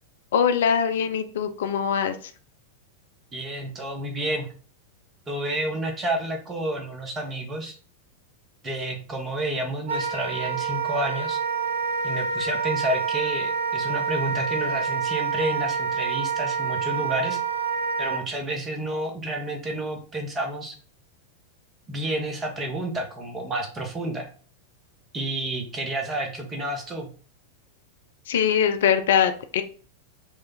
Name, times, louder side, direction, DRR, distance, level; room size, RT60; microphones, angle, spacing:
voice 1, 0.3-2.3 28.3-29.6, left 8 dB, 60° left, 9 dB, 0.4 m, -22 dB
voice 2, 3.3-4.5 5.3-7.7 8.6-11.4 12.0-17.4 18.0-20.7 21.9-24.3 25.1-27.1, right 1 dB, 20° right, 3 dB, 1.1 m, -30 dB
Wind instrument woodwind instrument, 9.9-18.2, right 5 dB, 70° right, 0.6 m, -27 dB
4.8 x 2.5 x 4.2 m, 0.41 s
figure-of-eight pair, 90°, 0 cm